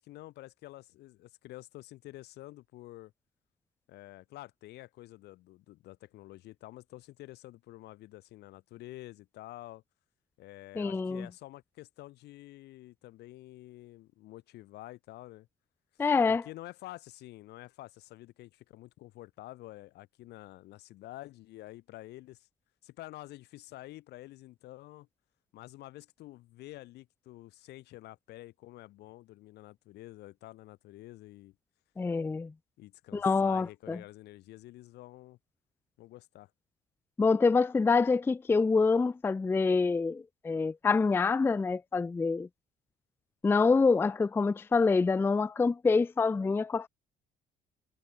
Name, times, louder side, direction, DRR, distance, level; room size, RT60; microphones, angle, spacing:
voice 1, 0.0-3.1 3.9-9.8 10.4-15.5 16.3-22.5 22.8-25.1 25.5-31.6 32.8-35.4 36.0-36.5, left 17 dB, 80° left, 2.0 m, -49 dB
voice 2, 10.8-11.3 16.0-16.4 32.0-32.5 33.1-34.0 37.2-42.5 43.4-46.9, left 4 dB, 15° left, 0.4 m, -26 dB
cardioid pair, 110°, 17 cm